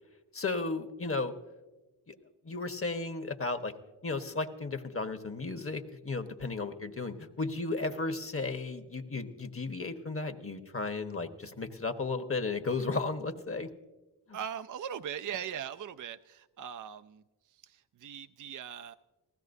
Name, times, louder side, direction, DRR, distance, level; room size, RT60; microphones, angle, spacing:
voice 1, 0.3-1.3 2.1-2.2 2.4-3.7 4.0-13.7 14.3-14.4, left 3 dB, 35° left, 6 dB, 1.3 m, -34 dB
voice 2, 14.3-18.9, right 8 dB, 50° right, 10 dB, 0.5 m, -40 dB
19.5 x 15.5 x 2.7 m, 1.1 s
cardioid pair, 40°, 41 cm